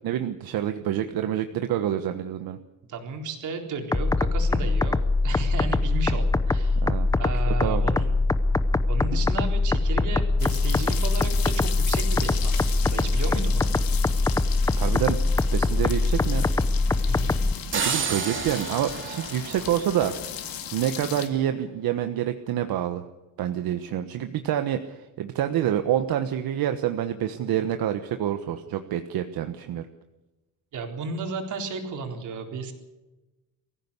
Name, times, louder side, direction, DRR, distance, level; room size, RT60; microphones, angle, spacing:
voice 1, 0.0-2.6 6.8-7.1 7.5-7.9 14.8-16.4 17.7-20.1 20.7-23.0 23.4-29.9, right 10 dB, 75° right, 8 dB, 1.3 m, -27 dB
voice 2, 2.9-6.9 7.2-8.1 8.9-13.7 17.0-17.4 30.7-32.7, right 4 dB, 55° right, 3 dB, 4.1 m, -34 dB
sound 1, 3.9-17.5, left 2 dB, 10° left, 0.7 m, -23 dB
sound 2, 10.4-21.3, left 10 dB, 70° left, 2.7 m, -37 dB
sound 3, 17.7-20.6, right 6 dB, 35° right, 2.9 m, -31 dB
23.0 x 15.5 x 8.4 m, 1.1 s
cardioid pair, 180°, 36 cm